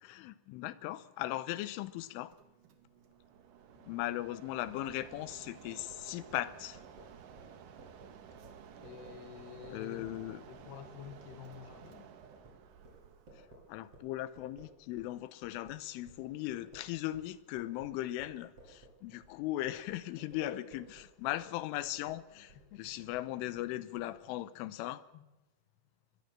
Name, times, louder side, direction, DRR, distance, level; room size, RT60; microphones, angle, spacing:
voice 1, 0.0-2.3 3.8-6.8 9.7-10.4 13.7-20.8 21.2-25.0, left 15 dB, 80° left, 16 dB, 3.4 m, -38 dB
Mechanisms, 2.3-14.7, right 8 dB, 60° right, 2.4 m, -54 dB
sound 1, 4.6-15.2 15.4-24.2, right 2 dB, 30° right, 8.0 m, -58 dB
voice 2, 8.8-12.1 20.3-20.7 22.5-22.9 25.1-25.3, left 8 dB, 60° left, 9 dB, 3.7 m, -50 dB
22.0 x 21.5 x 7.5 m, 1.0 s
omnidirectional pair, 5.8 m